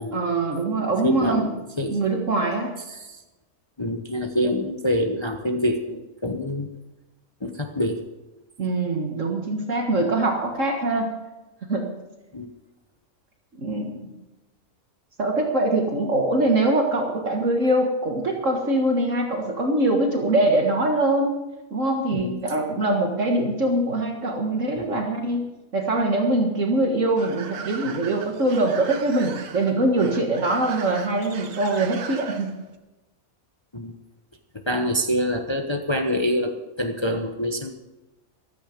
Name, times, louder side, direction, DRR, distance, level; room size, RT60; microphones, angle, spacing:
voice 1, 0.1-1.5 1.9-2.8 8.6-11.2 11.7-11.9 13.6-14.1 15.2-21.4 21.7-25.4 25.7-32.5, right 2 dB, 55° right, 2 dB, 2.0 m, -23 dB
voice 2, 1.0-1.5 1.8-2.0 2.9-3.2 3.8-6.7 7.4-8.0 10.0-10.1 12.3-12.5 22.1-22.4 24.7-25.0 33.7-33.9 34.7-36.5 36.8-37.7, equal, 20° left, 4 dB, 1.0 m, -26 dB
sound 1, 27.2-32.7, right 6 dB, 80° right, 1.6 m, -39 dB
15.0 x 13.5 x 5.2 m, 1.1 s
omnidirectional pair, 1.6 m